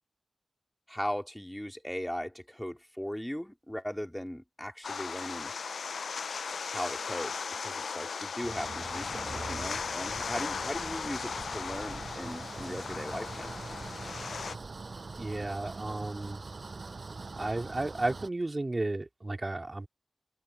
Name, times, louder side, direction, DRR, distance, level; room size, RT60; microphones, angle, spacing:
voice 1, 0.9-5.5 6.7-13.6, equal, 5° left, 3.2 m, -38 dB
sound 1, 4.8-14.5, left 5 dB, 85° left, 0.4 m, -37 dB
sound 2, 8.4-18.3, right 3 dB, 60° right, 7.3 m, -43 dB
voice 2, 15.2-16.4 17.4-19.9, right 2 dB, 35° right, 3.9 m, -33 dB
open air
cardioid pair, 40°, 0 cm